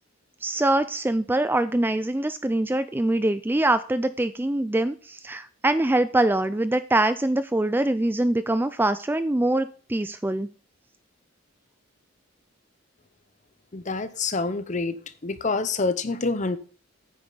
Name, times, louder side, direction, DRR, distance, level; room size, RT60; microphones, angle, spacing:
voice 1, 0.4-10.5, right 1 dB, 10° right, 0.3 m, -24 dB
voice 2, 13.7-15.0 15.2-16.6, left 3 dB, 35° left, 0.8 m, -27 dB
9.5 x 8.7 x 4.0 m
head